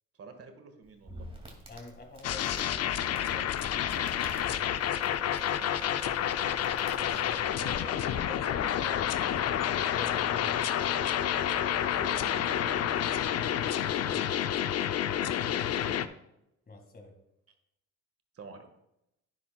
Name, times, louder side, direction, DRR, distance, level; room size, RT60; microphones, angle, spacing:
voice 1, 0.2-1.3 3.9-4.1 5.6-5.8 7.5-7.7 11.9-12.8 15.7-16.0 18.3-18.7, right 4 dB, 50° right, 6 dB, 1.7 m, -47 dB
Crackle, 0.8-7.5, right 1 dB, 20° right, 2.3 m, -51 dB
voice 2, 1.7-4.7 7.0-9.1 9.5-11.0 13.6-14.5 16.7-17.1, left 2 dB, 30° left, 4 dB, 2.0 m, -48 dB
sound 1, 2.2-16.1, left 10 dB, 55° left, 0.6 m, -29 dB
10.5 x 9.8 x 2.3 m, 0.83 s
cardioid pair, 90°, 30 cm